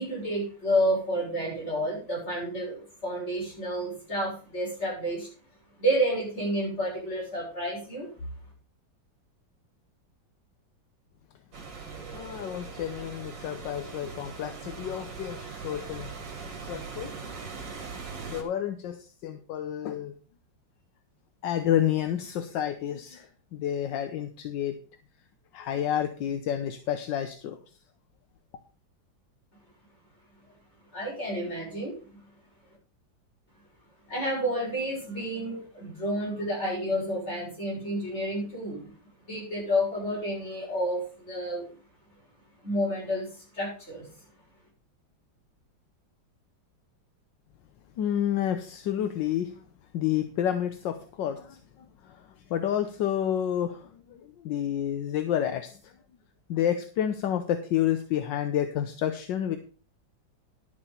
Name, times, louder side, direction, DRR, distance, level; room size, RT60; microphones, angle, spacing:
voice 1, 0.0-5.3 5.8-8.1 30.9-32.2 34.1-38.9 39.3-41.7 42.6-43.3 43.5-44.1, equal, 35° left, -5 dB, 7.2 m, -30 dB
sound 1, 11.5-18.4, right 5 dB, 70° right, 2.8 m, -41 dB
voice 2, 12.1-17.3 18.2-20.1 21.4-24.8 25.5-27.6 48.0-49.5 49.9-55.9 56.5-59.6, left 10 dB, 75° left, 8 dB, 1.5 m, -30 dB
11.5 x 6.5 x 5.5 m, 0.39 s
omnidirectional pair, 2.0 m